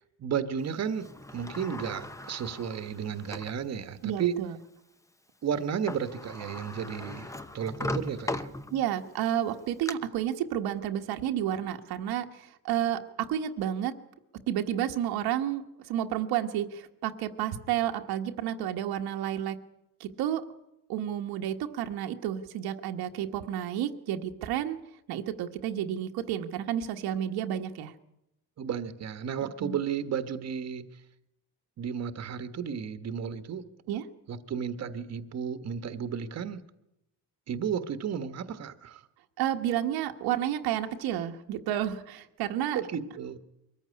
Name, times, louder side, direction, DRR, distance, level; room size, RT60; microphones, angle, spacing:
voice 1, 0.0-4.4 5.4-8.5 28.6-31.0 31.8-33.6 34.3-36.6 37.5-39.0 42.7-43.4, right 7 dB, 45° right, 11 dB, 1.3 m, -33 dB
Sliding door, 1.0-3.6 4.2-4.3 5.6-5.7 5.9-9.0 9.5-9.9, left 1 dB, 10° left, 0.9 m, -38 dB
voice 2, 4.0-4.6 8.7-13.9 14.5-19.6 20.0-20.4 20.9-24.8 25.1-27.9 29.6-29.8 33.9-34.0 39.4-42.8, right 11 dB, 85° right, 5 dB, 1.4 m, -31 dB
23.0 x 14.5 x 9.7 m, 0.87 s
cardioid pair, 130°, 37 cm